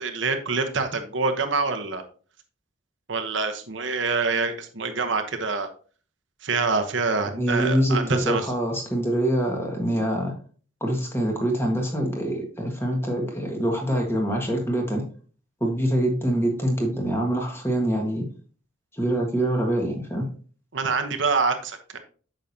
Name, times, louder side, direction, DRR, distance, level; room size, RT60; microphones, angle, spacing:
voice 1, 0.0-2.0 3.1-5.7 6.4-8.5 20.7-22.0, right 4 dB, 75° right, 6 dB, 1.1 m, -26 dB
voice 2, 7.4-10.3 10.8-15.0 15.6-18.2 18.9-20.3, right 1 dB, 10° left, 1 dB, 1.6 m, -25 dB
8.7 x 6.3 x 2.8 m, 0.40 s
head